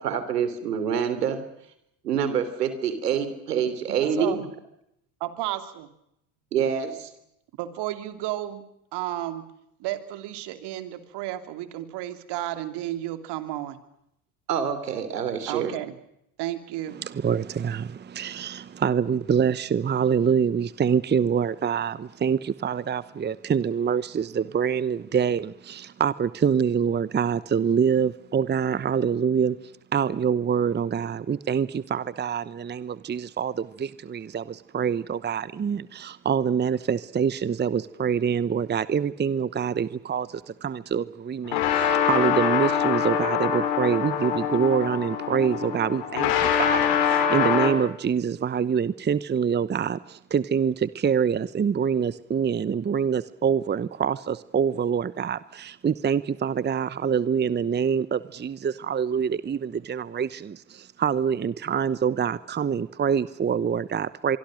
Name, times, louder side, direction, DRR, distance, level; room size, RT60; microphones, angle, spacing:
voice 1, 0.0-1.4 2.0-4.4 6.5-7.1 14.5-15.7, right 7 dB, 90° right, 3.3 m, -26 dB
voice 2, 3.9-4.4 5.2-5.9 7.6-8.6 8.9-9.5 9.8-13.8 15.5-15.9 16.4-17.0, right 14 dB, 60° right, 3.0 m, -32 dB
voice 3, 16.9-64.4, right 7 dB, 20° right, 1.0 m, -25 dB
sound 1, 41.5-47.7, left 8 dB, 65° left, 5.3 m, -24 dB
25.0 x 24.0 x 6.5 m
hypercardioid pair, 75°, 46 cm